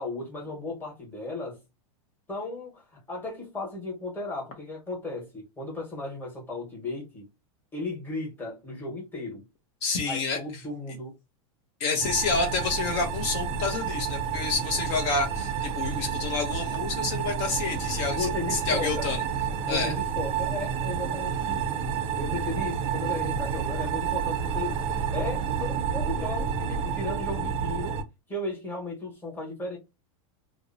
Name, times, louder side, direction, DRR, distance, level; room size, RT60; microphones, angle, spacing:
voice 1, 0.0-1.6 2.3-2.8 3.1-7.3 7.7-9.5 10.1-11.1 18.1-19.1 19.6-21.8 22.2-24.8 25.1-29.8, left 2 dB, 10° left, 1.1 m, -35 dB
voice 2, 9.8-10.4 11.8-19.2 19.7-19.9, left 4 dB, 55° left, 0.6 m, -28 dB
sound 1, 12.0-28.0, right 7 dB, 35° right, 0.4 m, -30 dB
2.6 x 2.0 x 2.6 m
supercardioid pair, 130°, 17 cm